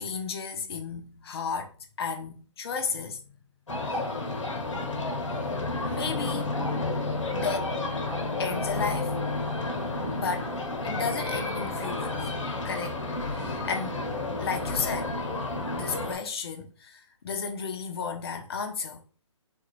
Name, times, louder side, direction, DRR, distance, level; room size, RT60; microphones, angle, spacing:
voice 1, 0.0-1.7 2.0-3.2 3.9-4.0 5.9-6.5 7.3-7.7 8.4-9.1 10.1-10.5 10.8-12.3 12.6-13.0 13.3-15.1 15.7-19.0, left 5 dB, 50° left, 0.8 m, -33 dB
sound 1, 3.7-16.1, left 2 dB, 75° left, 1.1 m, -31 dB
3.7 x 2.6 x 3.1 m
figure-of-eight pair, 140°, 17 cm